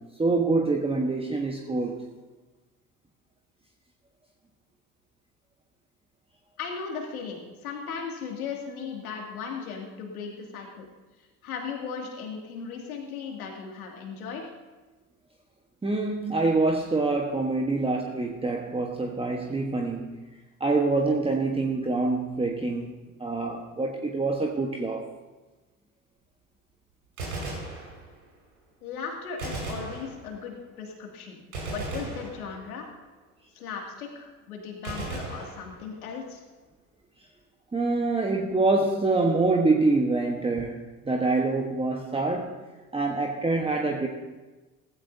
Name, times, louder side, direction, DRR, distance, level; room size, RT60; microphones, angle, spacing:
voice 1, 0.0-2.0 15.8-20.2 20.6-22.9 23.2-25.1 37.7-42.6 42.9-44.1, right 3 dB, 15° right, 1 dB, 1.2 m, -26 dB
voice 2, 6.6-10.9 11.4-14.4 28.8-31.4 31.7-32.9 33.5-36.4, left 5 dB, 85° left, 1 dB, 2.6 m, -37 dB
Gunshot gunfire, 27.0-28.4 29.4-30.6 31.5-33.0 34.8-36.2, right 2 dB, 85° right, 5.1 m, -37 dB
16.0 x 15.0 x 2.8 m, 1.2 s
hypercardioid pair, 70°, 42 cm